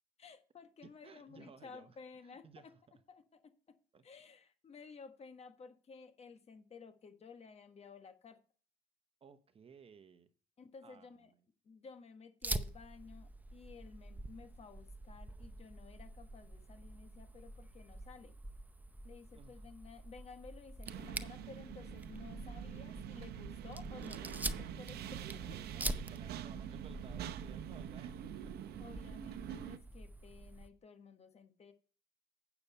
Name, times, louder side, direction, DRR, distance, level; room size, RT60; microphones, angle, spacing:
voice 1, 0.2-2.7 3.1-3.4 4.0-8.4 10.6-11.3 11.6-18.3 19.0-25.6 28.8-31.7, left 5 dB, 40° left, 1.4 m, -55 dB
voice 2, 0.8-2.8 3.9-4.0 9.2-10.3 10.8-11.4 19.3-19.7 25.2-28.5, right 6 dB, 35° right, 1.0 m, -58 dB
Fire, 12.4-30.7, right 1 dB, 10° right, 0.6 m, -46 dB
sound 1, 20.9-29.8, right 10 dB, 70° right, 0.8 m, -45 dB
8.8 x 6.9 x 4.2 m
cardioid pair, 110°, 17 cm